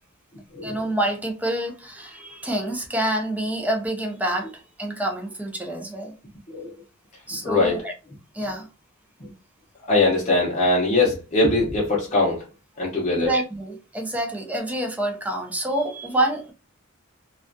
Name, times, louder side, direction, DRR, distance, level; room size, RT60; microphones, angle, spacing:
voice 1, 0.6-6.1 7.3-7.9 8.3-8.7 13.1-16.5, right 1 dB, 5° right, 0.4 m, -27 dB
voice 2, 7.3-7.8 9.2-9.3 9.9-12.4 12.8-13.3, left 2 dB, 35° left, 0.6 m, -21 dB
2.3 x 2.2 x 2.5 m
head